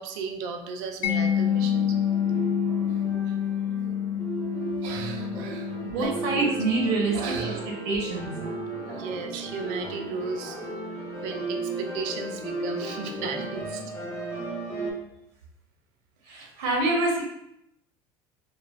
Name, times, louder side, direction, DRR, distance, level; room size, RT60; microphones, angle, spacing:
voice 1, 0.0-2.0 2.9-3.0 4.8-6.5 7.1-7.7 8.4-13.8 16.4-16.5, right 5 dB, 65° right, 5 dB, 0.4 m, -36 dB
Mallet percussion, 1.0-7.8, left 9 dB, 65° left, 0.4 m, -28 dB
sound 1, 1.1-14.9, right 2 dB, 20° left, 0.6 m, -35 dB
voice 2, 5.8-7.5 7.8-8.3 16.3-17.2, right 3 dB, 85° right, -1 dB, 0.8 m, -26 dB
3.1 x 2.2 x 2.3 m, 0.82 s
cardioid pair, 150°, 13 cm